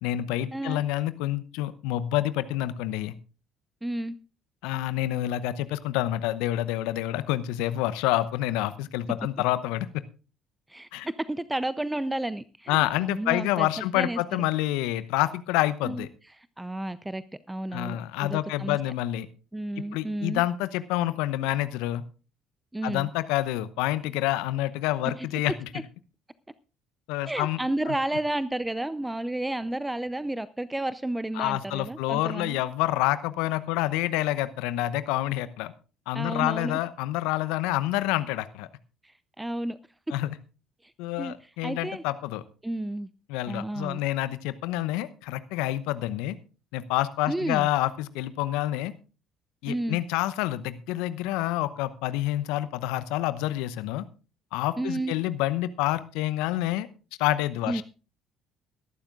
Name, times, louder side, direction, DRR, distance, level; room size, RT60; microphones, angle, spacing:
voice 1, 0.0-3.1 4.6-10.0 10.9-11.1 12.7-16.1 17.7-19.3 19.8-22.0 22.8-25.7 27.1-27.6 27.9-28.0 31.4-35.7 36.1-38.7 40.1-40.4 41.0-42.4 43.3-46.4 46.7-48.9 49.6-54.0 54.5-56.9 57.2-57.8, left 15 dB, 70° left, 14 dB, 0.8 m, -28 dB
voice 2, 3.8-4.2 10.7-13.7 13.9-14.2 15.8-16.1 16.4-18.8 19.5-20.4 22.7-23.1 25.2-25.3 25.7-25.8 27.3-32.6 36.1-36.8 39.4-39.8 41.2-41.4 41.6-42.0 42.6-43.1 43.5-44.0 47.3-47.7 49.7-50.0 54.8-55.1 57.7-57.8, right 1 dB, 10° right, 16 dB, 0.6 m, -31 dB
22.0 x 11.5 x 2.5 m, 0.35 s
hypercardioid pair, 55°, 0 cm